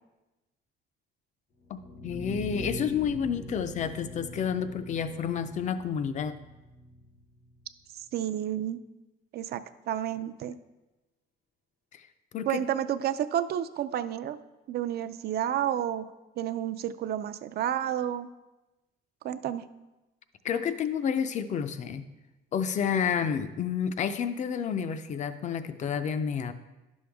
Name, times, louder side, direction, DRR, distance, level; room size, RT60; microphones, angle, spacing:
sound 1, 1.6-7.6, left 1 dB, 85° left, 3.3 m, -42 dB
voice 1, 1.7-6.4 11.9-12.1 12.3-12.6 20.4-22.1 22.5-26.5, left 7 dB, 40° left, 11 dB, 0.4 m, -30 dB
voice 2, 7.9-8.8 9.3-9.6 9.9-10.5 12.5-14.4 14.7-16.0 16.4-18.3 19.2-19.6, right 10 dB, 55° right, 11 dB, 0.4 m, -30 dB
11.0 x 6.2 x 3.5 m, 1.1 s
cardioid pair, 180°, 19 cm